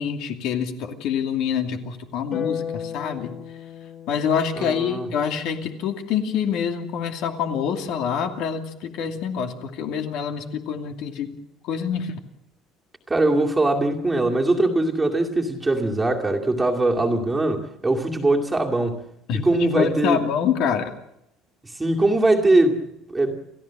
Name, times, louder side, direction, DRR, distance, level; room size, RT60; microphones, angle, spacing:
voice 1, 0.0-3.3 4.1-11.3 11.6-12.1 19.3-20.9, left 7 dB, 60° left, 5 dB, 2.6 m, -26 dB
Harp, 2.3-8.8 10.5-11.4, left 7 dB, 40° left, 5.9 m, -38 dB
voice 2, 4.5-5.1 13.1-19.1 19.3-20.2 21.6-22.8 23.1-23.4, right 2 dB, 10° right, 0 dB, 2.3 m, -21 dB
29.0 x 15.0 x 7.5 m, 0.81 s
cardioid pair, 170°, 0 cm